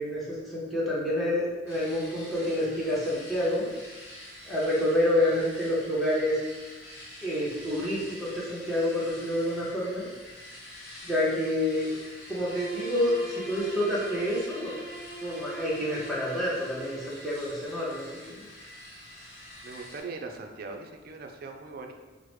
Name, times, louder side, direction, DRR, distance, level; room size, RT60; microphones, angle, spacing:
voice 1, 0.0-3.7 4.4-6.4 7.2-10.1 11.0-11.9 12.3-14.7 15.2-18.4, left 1 dB, ahead, -7 dB, 0.8 m, -28 dB
sound 1, 1.7-20.0, left 1 dB, 50° left, 1.2 m, -47 dB
Bowed string instrument, 12.2-17.1, right 2 dB, 25° right, 1.4 m, -42 dB
voice 2, 19.6-21.9, right 3 dB, 50° right, 3 dB, 0.4 m, -40 dB
4.6 x 2.1 x 3.1 m, 1.3 s
head